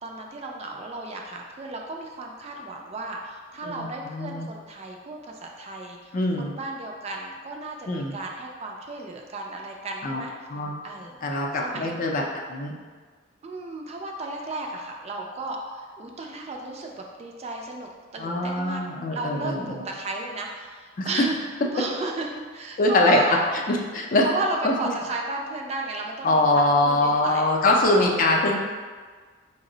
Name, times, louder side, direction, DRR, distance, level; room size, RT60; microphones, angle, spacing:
voice 1, 0.0-10.5 10.8-11.2 11.6-11.9 13.4-18.8 19.1-21.3 21.7-23.4 24.2-27.5 27.9-28.1, right 2 dB, 30° right, 1 dB, 0.3 m, -34 dB
voice 2, 3.6-4.5 6.1-6.5 7.9-8.1 10.0-10.2 10.5-10.7 11.2-12.2 12.5-12.7 18.2-19.7 21.0-21.3 22.8-23.2 23.7-24.3 24.6-24.7 26.2-28.6, left 2 dB, 40° left, 0 dB, 0.4 m, -23 dB
4.4 x 2.0 x 3.8 m, 1.5 s
head